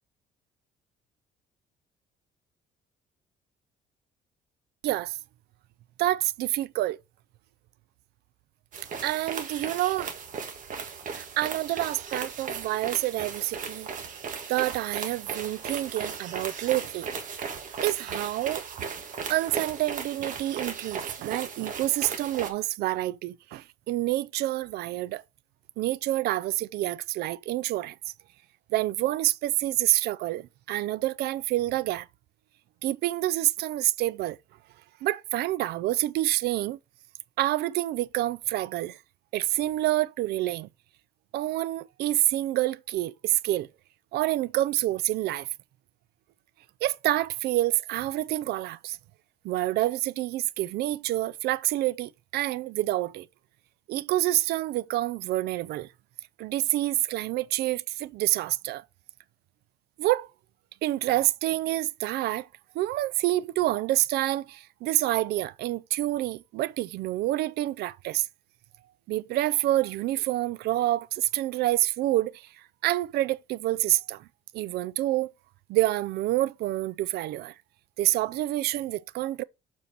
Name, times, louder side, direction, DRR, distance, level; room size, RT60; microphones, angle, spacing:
voice 1, 4.8-5.2 6.0-7.0 9.0-10.1 11.1-13.9 14.5-17.1 17.8-18.6 19.3-25.2 25.8-27.9 28.7-32.1 32.8-34.4 35.0-36.8 37.4-39.0 39.3-40.7 41.3-43.7 44.1-45.5 46.8-49.0 49.4-53.3 53.9-55.9 56.4-58.8 60.0-60.3 60.8-62.5 62.7-68.3 69.1-72.5 72.8-74.2 74.5-75.3 75.7-77.5 78.0-79.4, right 15 dB, 75° right, 0.4 m, -27 dB
sound 1, 8.7-22.5, right 6 dB, 50° right, 1.5 m, -37 dB
7.1 x 4.4 x 4.0 m
cardioid pair, 110°, 17 cm